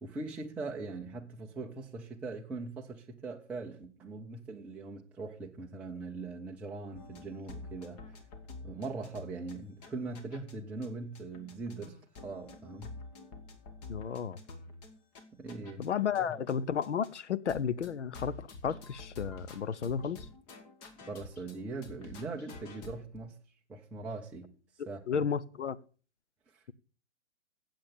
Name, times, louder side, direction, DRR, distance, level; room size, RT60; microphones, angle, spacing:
voice 1, 0.0-8.0 8.6-12.9 15.4-15.9 16.2-16.3 21.1-23.3 23.7-24.5 24.9-25.2 26.5-26.6, right 3 dB, 5° right, 0.4 m, -41 dB
sound 1, 6.9-10.5 10.8-10.9 11.1-16.5 16.8-17.2 17.5-21.6 21.8-23.1, left 3 dB, 35° left, 1.7 m, -48 dB
voice 2, 13.9-14.4 15.8-20.3 25.1-25.8, left 7 dB, 80° left, 0.8 m, -33 dB
8.6 x 7.8 x 6.9 m
hypercardioid pair, 125°, 35 cm